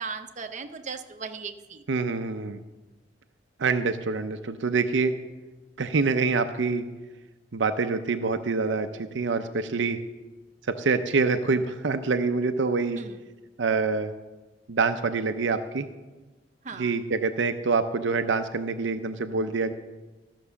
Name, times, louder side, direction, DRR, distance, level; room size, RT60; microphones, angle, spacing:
voice 1, 0.0-1.8 13.0-13.2 16.6-16.9, right 5 dB, 40° right, 6 dB, 0.7 m, -37 dB
voice 2, 1.9-2.6 3.6-5.1 5.8-6.8 7.5-8.9 9.1-10.0 10.7-13.0 13.6-14.1 14.7-15.9 16.8-19.7, right 4 dB, 75° right, 8 dB, 0.6 m, -26 dB
13.5 x 6.1 x 6.9 m, 1.2 s
head